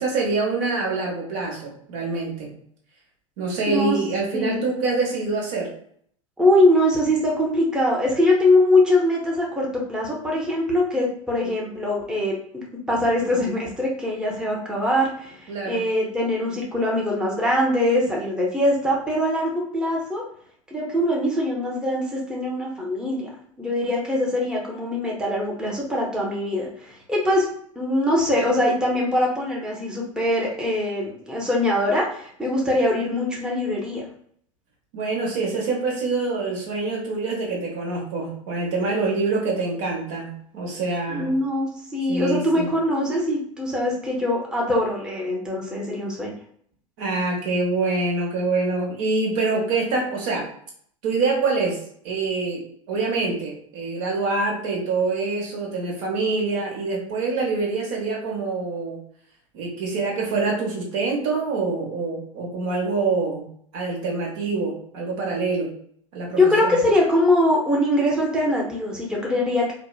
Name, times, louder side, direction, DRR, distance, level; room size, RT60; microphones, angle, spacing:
voice 1, 0.0-2.5 3.4-5.7 15.5-15.8 34.9-41.3 42.1-42.7 47.0-50.5 51.0-52.6 52.9-59.0 59.5-63.4 63.7-65.7 66.1-66.8, right 3 dB, 65° right, -1 dB, 1.0 m, -25 dB
voice 2, 3.7-4.0 4.3-4.6 6.4-20.2 20.7-23.3 23.6-27.5 27.8-34.1 41.1-46.3 66.4-69.7, left 1 dB, 5° right, -3 dB, 0.7 m, -22 dB
2.7 x 2.1 x 2.3 m, 0.62 s
hypercardioid pair, 95°, 17 cm